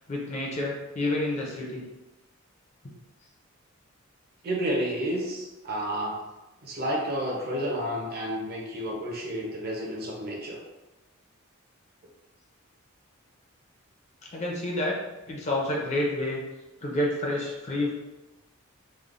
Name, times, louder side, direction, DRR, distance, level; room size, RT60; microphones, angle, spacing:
voice 1, 0.1-1.9 14.3-15.0 15.3-16.4 16.8-17.9, left 1 dB, 30° left, -2 dB, 0.4 m, -29 dB
voice 2, 4.4-6.2 6.6-10.6, equal, 45° right, -2 dB, 0.5 m, -30 dB
3.1 x 2.0 x 2.4 m, 1.1 s
head